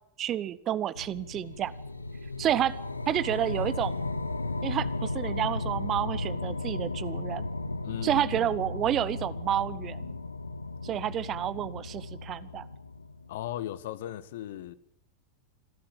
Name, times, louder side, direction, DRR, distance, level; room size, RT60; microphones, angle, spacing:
voice 1, 0.2-1.7 2.4-2.8 3.1-3.9 4.6-7.5 8.0-10.0 10.8-12.6, right 11 dB, 30° right, 0.8 m, -30 dB
sound 1, 0.9-13.5, left 2 dB, 80° left, 1.0 m, -35 dB
voice 2, 7.8-8.5 13.3-14.7, left 12 dB, 55° left, 1.2 m, -37 dB
26.5 x 13.0 x 8.8 m
figure-of-eight pair, 90°, 0 cm